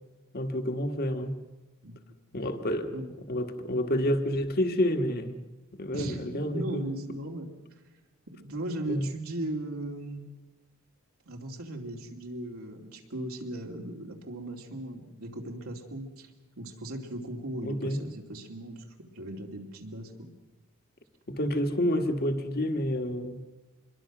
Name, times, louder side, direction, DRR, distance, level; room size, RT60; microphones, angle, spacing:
voice 1, 0.3-1.4 2.3-2.9 3.3-5.4 5.7-6.8 8.9-9.1 17.6-18.0 21.3-23.4, equal, 45° left, 7 dB, 1.7 m, -29 dB
voice 2, 1.8-2.2 2.9-3.1 5.9-7.5 8.3-10.3 11.3-16.3 16.6-18.8 19.1-20.3, right 1 dB, 85° right, 0 dB, 2.8 m, -37 dB
26.0 x 22.0 x 6.2 m, 1.1 s
head